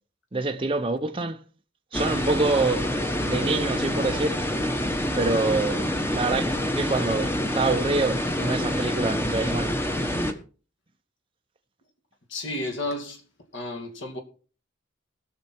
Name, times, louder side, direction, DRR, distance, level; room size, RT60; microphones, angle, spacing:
voice 1, 0.3-1.4 1.9-2.9 3.2-4.4 5.1-6.5 6.7-9.7, right 3 dB, 25° right, 0.6 m, -26 dB
sound 1, 1.9-10.3, left 1 dB, 10° left, 1.1 m, -27 dB
voice 2, 12.3-13.2 13.5-14.2, left 1 dB, 65° left, 2.5 m, -32 dB
19.0 x 6.7 x 4.4 m
head